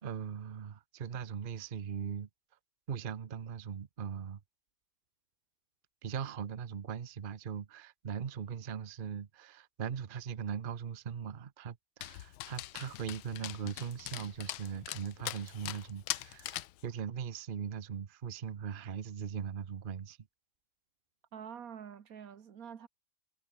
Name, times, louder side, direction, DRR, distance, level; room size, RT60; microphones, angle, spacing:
voice 1, 0.0-2.3 2.9-4.4 6.0-20.2, right 7 dB, 80° right, 0.4 m, -40 dB
Dog, 12.0-16.8, left 15 dB, 80° left, 1.5 m, -42 dB
voice 2, 21.3-22.9, right 8 dB, 50° right, 1.5 m, -46 dB
omnidirectional pair, 2.3 m